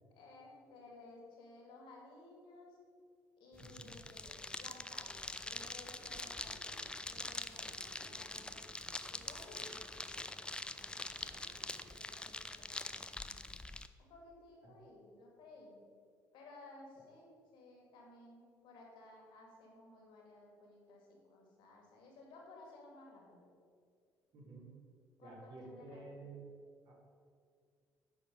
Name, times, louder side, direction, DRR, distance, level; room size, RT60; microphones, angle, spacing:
voice 1, 0.2-2.8 3.4-10.1 10.6-11.6 11.9-13.3 14.0-15.8 16.3-17.3 17.5-23.5 25.2-26.3, left 2 dB, 55° left, -1 dB, 2.2 m, -57 dB
sound 1, 3.5-13.9, left 2 dB, 10° left, 0.4 m, -45 dB
voice 2, 3.6-4.0 14.6-14.8 24.3-24.7 25.2-26.4 26.9-27.0, right 3 dB, 45° right, -3 dB, 2.7 m, -52 dB
sound 2, 5.9-11.9, right 1 dB, 80° right, 2.0 m, -62 dB
9.2 x 6.6 x 5.1 m, 2.1 s
figure-of-eight pair, 50°, 10 cm